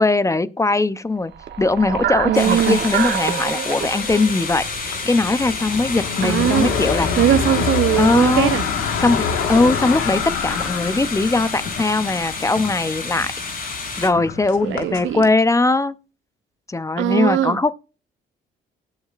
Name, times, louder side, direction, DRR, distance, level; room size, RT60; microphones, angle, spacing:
voice 1, 0.0-1.3 1.6-7.2 8.0-8.5 9.0-13.3 14.0-15.9 16.7-17.7, left 3 dB, 15° left, 0.6 m, -20 dB
sound 1, 1.3-5.6, right 9 dB, 60° right, 1.1 m, -26 dB
voice 2, 2.2-2.8 6.2-6.8 7.2-8.7 14.6-15.3 17.0-17.6, right 12 dB, 75° right, 0.6 m, -20 dB
sound 2, 2.3-14.1, left 4 dB, 45° left, 3.5 m, -30 dB
sound 3, 3.8-15.3, left 6 dB, 85° left, 1.7 m, -27 dB
18.5 x 6.3 x 2.5 m
cardioid pair, 90°, 20 cm